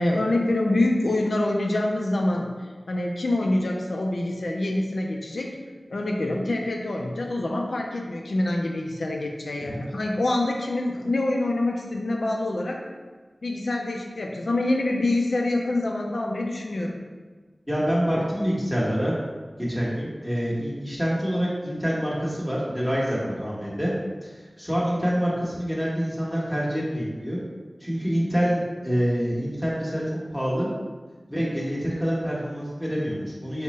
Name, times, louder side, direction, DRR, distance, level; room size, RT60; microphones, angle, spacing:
voice 1, 0.0-2.5 2.9-5.6 5.9-12.8 13.4-17.0, left 2 dB, 85° left, 1 dB, 0.4 m, -25 dB
voice 2, 17.7-19.2 19.6-23.9 24.2-24.3 24.6-27.4 27.8-30.0 30.3-30.7 31.3-33.6, equal, ahead, -6 dB, 1.1 m, -26 dB
3.7 x 2.1 x 4.1 m, 1.4 s
wide cardioid pair, 60°, 0 cm